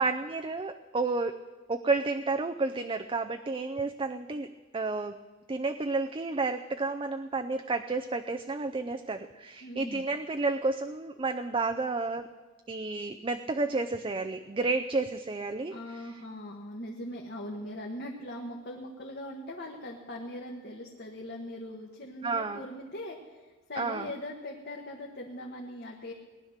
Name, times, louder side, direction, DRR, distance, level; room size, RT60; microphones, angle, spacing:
voice 1, 0.0-1.4 1.7-4.5 4.7-5.2 5.5-12.3 12.7-16.0 22.2-22.6 23.8-24.1, right 3 dB, 25° right, 6 dB, 0.5 m, -31 dB
voice 2, 9.6-10.0 15.7-26.1, left 1 dB, 55° left, 0 dB, 1.5 m, -40 dB
18.5 x 10.5 x 6.6 m, 1.3 s
head